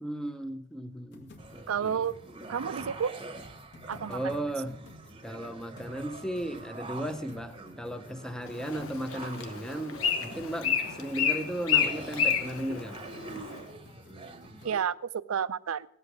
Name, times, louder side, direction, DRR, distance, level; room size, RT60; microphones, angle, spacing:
voice 1, 0.0-2.0 4.1-4.8 5.2-13.1, right 1 dB, 5° left, 8 dB, 0.6 m, -36 dB
sound 1, 1.1-14.7, left 2 dB, 55° left, 1.9 m, -52 dB
sound 2, 1.4-14.8, right 3 dB, 25° right, 0.9 m, -46 dB
voice 2, 1.7-2.1 2.5-3.1 3.9-4.2 14.6-15.9, right 7 dB, 70° right, 18 dB, 0.4 m, -30 dB
Bird, 8.5-13.6, left 7 dB, 75° left, 1.2 m, -30 dB
17.5 x 8.1 x 6.1 m, 0.75 s
head